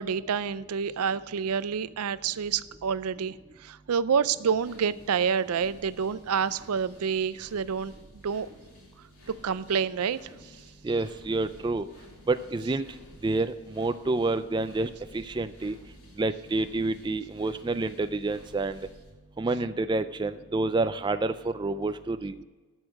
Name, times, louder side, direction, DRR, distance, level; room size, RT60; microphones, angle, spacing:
voice 1, 0.0-3.3 3.6-7.9 8.2-8.5 9.4-10.2, right 6 dB, 85° right, 17 dB, 0.4 m, -28 dB
sound 1, 4.5-19.1, left 1 dB, 80° left, 3.6 m, -54 dB
voice 2, 10.8-11.8 12.3-12.8 13.2-15.7 16.2-18.8 19.4-22.4, right 2 dB, 20° right, 11 dB, 0.3 m, -28 dB
13.0 x 6.4 x 6.3 m, 1.3 s
head